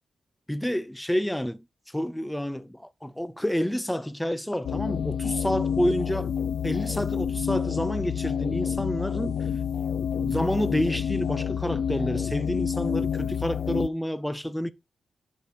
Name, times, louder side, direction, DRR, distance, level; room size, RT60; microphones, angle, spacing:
voice 1, 0.5-6.3 6.6-9.5 10.1-14.7, equal, 5° left, 0.5 m, -29 dB
sound 1, 4.6-13.9, left 7 dB, 75° left, 0.5 m, -28 dB
10.5 x 4.8 x 4.7 m
wide cardioid pair, 135°, 0 cm